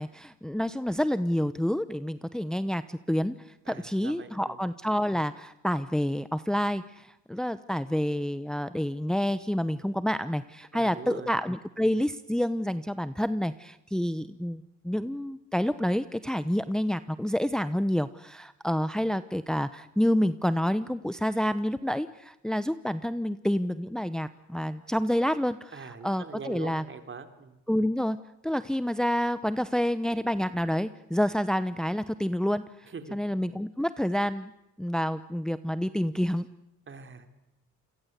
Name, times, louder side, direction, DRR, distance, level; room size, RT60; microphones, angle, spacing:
voice 1, 0.0-26.8 27.7-28.2 28.4-34.5 34.8-36.5, equal, ahead, 13 dB, 0.9 m, -28 dB
voice 2, 3.7-4.6 10.7-11.3 25.7-27.6 32.9-33.2 36.9-37.3, right 5 dB, 40° right, 7 dB, 3.7 m, -42 dB
29.0 x 23.0 x 8.3 m, 0.87 s
cardioid pair, 90°, 30 cm